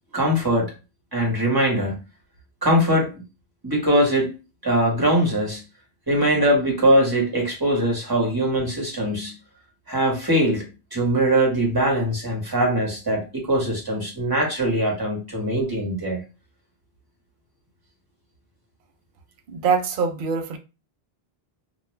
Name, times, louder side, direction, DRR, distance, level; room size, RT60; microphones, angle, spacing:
voice 1, 0.1-0.7 1.1-1.9 2.6-3.1 3.6-4.3 4.6-5.6 6.1-9.4 9.9-16.2, right 1 dB, 20° right, 1.1 m, -21 dB
voice 2, 19.5-20.6, right 5 dB, 60° right, 0.7 m, -23 dB
2.4 x 2.3 x 3.1 m
omnidirectional pair, 1.0 m